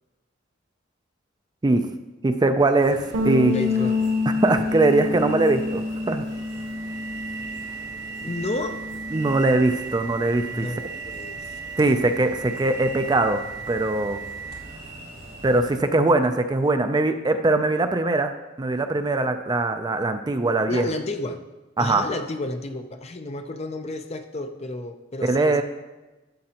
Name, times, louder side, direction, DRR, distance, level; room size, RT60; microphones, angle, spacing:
voice 1, 2.2-3.5 4.4-6.2 9.1-10.7 11.8-13.4 13.7-14.2 15.4-18.3 18.6-20.8 21.8-22.1 25.2-25.6, right 2 dB, 20° right, 8 dB, 0.4 m, -21 dB
sound 1, 2.8-15.8, right 1 dB, 45° right, 3.0 m, -42 dB
sound 2, 3.1-7.7 8.0-9.4, left 4 dB, 85° right, 1.2 m, -28 dB
voice 2, 3.5-4.1 8.2-8.8 10.5-12.0 20.7-21.4 21.8-25.6, left 2 dB, 35° left, 7 dB, 0.6 m, -32 dB
sound 3, 6.3-14.8, right 6 dB, 55° left, 2.1 m, -37 dB
11.5 x 7.7 x 2.9 m, 1.1 s
head